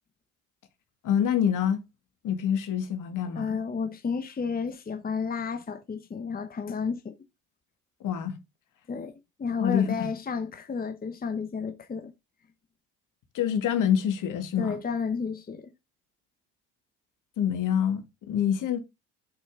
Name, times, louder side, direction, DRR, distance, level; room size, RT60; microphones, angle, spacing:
voice 1, 1.0-1.8 2.2-3.6 8.0-8.4 9.6-10.1 13.3-14.8 17.4-18.8, left 9 dB, 55° left, 2.3 m, -26 dB
voice 2, 3.3-7.2 8.9-12.1 14.6-15.7, left 5 dB, 25° left, 1.1 m, -32 dB
8.0 x 5.7 x 3.8 m
supercardioid pair, 75°, 36 cm